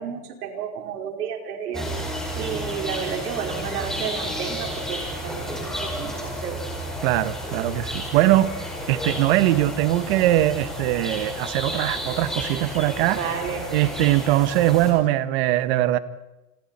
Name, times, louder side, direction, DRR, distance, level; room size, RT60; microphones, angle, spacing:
voice 1, 0.0-1.9 2.4-6.6 13.1-13.6, right 7 dB, 75° right, 5.1 m, -31 dB
sound 1, 1.7-14.9, equal, ahead, 5.0 m, -32 dB
sound 2, 1.9-11.5, left 6 dB, 20° left, 3.9 m, -50 dB
voice 2, 7.0-8.5 8.9-13.2 13.7-16.0, right 14 dB, 40° right, 1.3 m, -21 dB
29.5 x 27.0 x 4.4 m
supercardioid pair, 160°, 46 cm